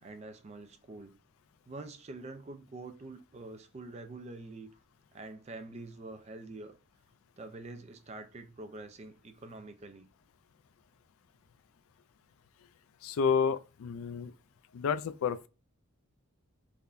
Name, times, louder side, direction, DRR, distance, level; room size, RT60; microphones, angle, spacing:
voice 1, 0.0-1.2 1.7-4.7 5.1-6.8 7.4-10.1, right 2 dB, 30° right, 0.3 m, -46 dB
voice 2, 13.0-14.3 14.7-15.5, left 6 dB, 70° left, 0.3 m, -30 dB
3.5 x 2.2 x 2.4 m
head